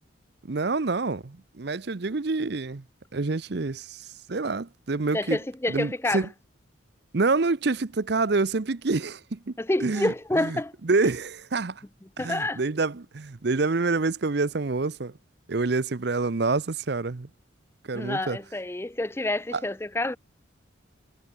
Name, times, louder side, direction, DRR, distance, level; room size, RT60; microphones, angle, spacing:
voice 1, 0.5-2.8 3.1-5.4 5.7-6.3 7.1-9.5 9.8-11.8 12.2-15.1 15.5-17.3 17.9-18.4 19.5-19.6, right 3 dB, 55° right, 0.7 m, -27 dB
voice 2, 5.1-6.3 9.6-10.7 11.0-11.1 12.2-12.6 17.9-20.2, left 2 dB, 10° left, 0.5 m, -28 dB
head